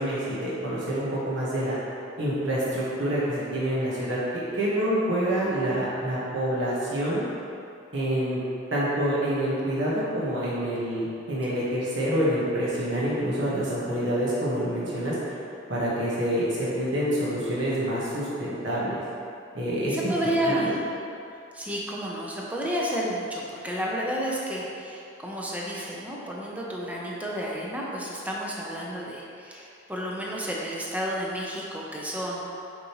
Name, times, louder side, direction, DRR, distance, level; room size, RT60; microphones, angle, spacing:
voice 1, 0.0-1.8 2.2-7.2 7.9-8.4 8.7-15.2 15.7-19.0 19.5-20.1 20.4-20.7, right 1 dB, 65° right, -8 dB, 1.4 m, -27 dB
voice 2, 19.9-20.8 21.3-32.4, equal, 10° right, -4 dB, 0.7 m, -31 dB
6.6 x 5.1 x 3.1 m, 2.6 s
head